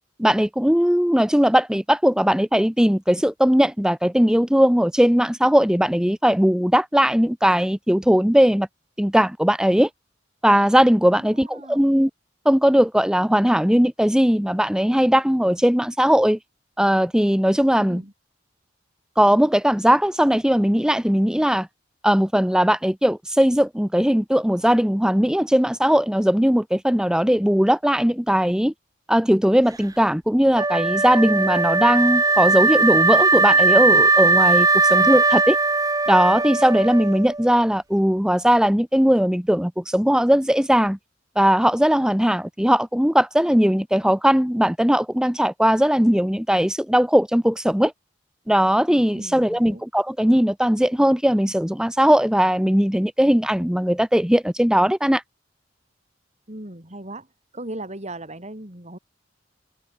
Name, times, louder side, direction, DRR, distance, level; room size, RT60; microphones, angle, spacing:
voice 1, 0.2-8.7 9.0-9.9 10.4-12.1 12.4-16.4 16.8-18.0 19.2-21.7 22.0-28.7 29.1-35.6 36.1-41.0 41.4-47.9 48.5-55.2, equal, 5° right, 0.9 m, -19 dB
voice 2, 11.1-12.0 17.7-18.1 49.1-49.8 56.5-57.3 57.5-59.0, right 1 dB, 35° right, 5.7 m, -38 dB
Wind instrument woodwind instrument, 30.5-37.6, right 3 dB, 20° right, 1.5 m, -19 dB
head